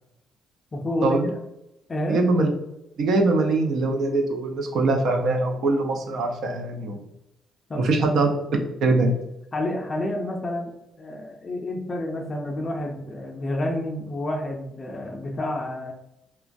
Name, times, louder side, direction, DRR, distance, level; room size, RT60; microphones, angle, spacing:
voice 1, 0.7-1.2 1.9-2.2 7.7-7.9 9.5-15.9, left 1 dB, 35° left, 1 dB, 0.4 m, -29 dB
voice 2, 2.1-2.5 3.0-7.0 7.8-8.3 8.8-9.1, right 2 dB, 70° right, 3 dB, 0.6 m, -22 dB
3.0 x 2.2 x 2.5 m, 0.87 s
cardioid pair, 90°, 0 cm